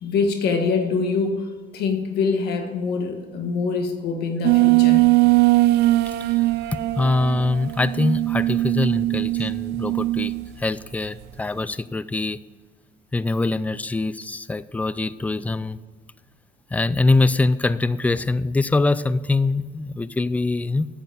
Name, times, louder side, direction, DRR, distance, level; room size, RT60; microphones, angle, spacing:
voice 1, 0.0-5.1 9.4-9.5, left 4 dB, 70° left, 4 dB, 1.7 m, -24 dB
sound 1, 4.4-10.5, right 18 dB, 80° right, 0.4 m, -20 dB
voice 2, 7.0-10.3 10.6-12.4 13.1-15.8 16.7-20.9, left 3 dB, 10° left, 17 dB, 0.3 m, -23 dB
9.1 x 7.8 x 5.2 m, 1.5 s
cardioid pair, 110°, 17 cm